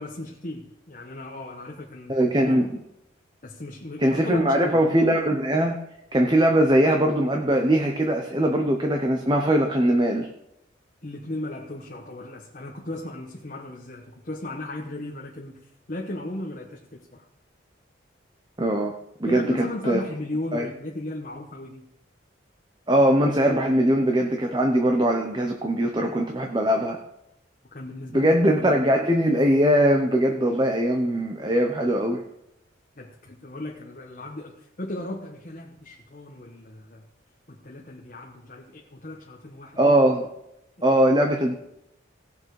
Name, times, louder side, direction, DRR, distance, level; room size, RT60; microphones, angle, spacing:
voice 1, 0.0-2.6 3.4-4.8 11.0-17.2 19.3-21.8 27.7-28.3 33.0-37.0 37.5-39.8 40.8-41.0, left 1 dB, 40° left, 0 dB, 1.2 m, -36 dB
voice 2, 2.1-2.8 4.0-5.8 6.1-10.3 18.6-18.9 19.2-20.0 20.5-20.7 22.9-27.0 28.1-32.2 39.8-40.2 40.8-41.6, right 1 dB, 25° right, 3 dB, 0.9 m, -21 dB
17.0 x 6.9 x 4.8 m, 0.83 s
head